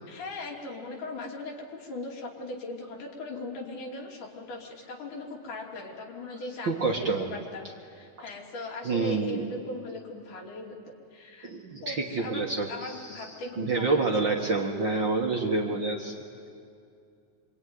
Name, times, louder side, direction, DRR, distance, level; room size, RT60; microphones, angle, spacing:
voice 1, 0.1-10.8 11.1-11.5 11.8-14.1, left 2 dB, 75° left, -1 dB, 4.2 m, -39 dB
voice 2, 6.6-7.3 8.8-9.5 11.4-13.3 13.6-16.1, right 3 dB, 45° right, 0 dB, 1.8 m, -28 dB
26.0 x 24.0 x 9.5 m, 2.4 s
omnidirectional pair, 3.6 m